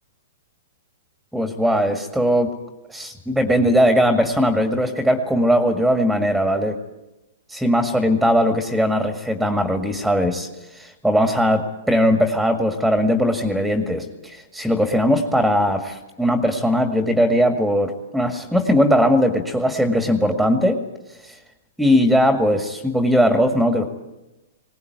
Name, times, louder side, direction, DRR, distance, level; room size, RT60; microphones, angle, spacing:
voice 1, 1.3-2.5 2.9-6.8 7.5-10.5 10.7-20.8 21.2-21.4 21.8-23.9, equal, ahead, 6 dB, 2.0 m, -19 dB
21.0 x 18.5 x 9.5 m, 1.0 s
hypercardioid pair, 120°, 0 cm